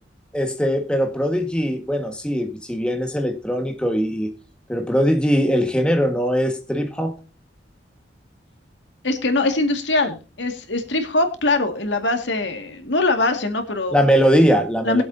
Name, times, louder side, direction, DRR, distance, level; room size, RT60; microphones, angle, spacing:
voice 1, 0.3-4.3 4.7-7.1 13.9-15.0, equal, 5° left, 1.6 m, -20 dB
voice 2, 9.0-14.0 14.8-15.0, left 2 dB, 85° left, 2.1 m, -22 dB
21.0 x 7.9 x 2.7 m
head